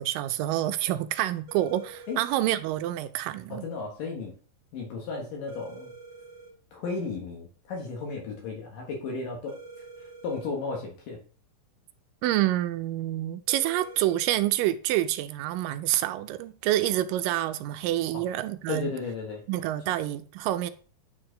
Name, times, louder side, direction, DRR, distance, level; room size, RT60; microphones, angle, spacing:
voice 1, 0.0-3.6 12.2-18.9 19.5-20.7, right 14 dB, 80° right, 2.1 m, -27 dB
sound 1, 1.5-2.5 5.5-6.5 9.5-10.5 13.5-14.5, right 4 dB, 65° right, 2.9 m, -46 dB
voice 2, 3.5-4.3 4.7-5.9 6.7-9.6 10.2-11.2 18.1-18.2 18.7-19.4 19.9-20.0, left 4 dB, 70° left, 2.7 m, -34 dB
9.4 x 4.5 x 3.8 m
omnidirectional pair, 4.2 m